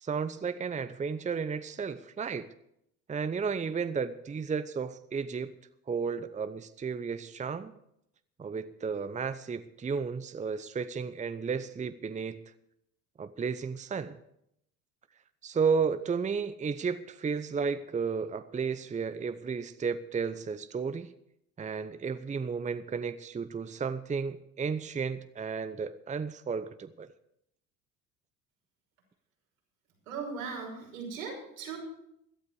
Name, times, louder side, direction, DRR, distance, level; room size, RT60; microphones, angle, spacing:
voice 1, 0.0-2.5 3.1-5.5 5.9-7.7 8.4-12.4 13.2-14.2 15.4-21.1 21.6-27.1, right 5 dB, 20° right, 12 dB, 0.8 m, -33 dB
voice 2, 30.1-31.8, right 5 dB, 90° right, -2 dB, 6.2 m, -38 dB
17.0 x 12.5 x 4.8 m, 0.77 s
hypercardioid pair, 65°, 39 cm